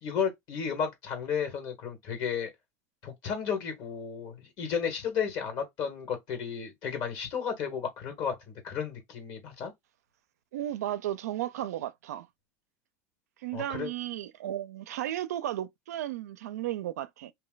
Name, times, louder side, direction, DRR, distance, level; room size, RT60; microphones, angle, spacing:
voice 1, 0.0-2.5 3.0-9.7 13.5-13.9, left 7 dB, 55° left, 1.7 m, -33 dB
voice 2, 10.5-12.3 13.4-17.3, right 13 dB, 90° right, 0.4 m, -34 dB
2.7 x 2.1 x 3.8 m
supercardioid pair, 110°, 8 cm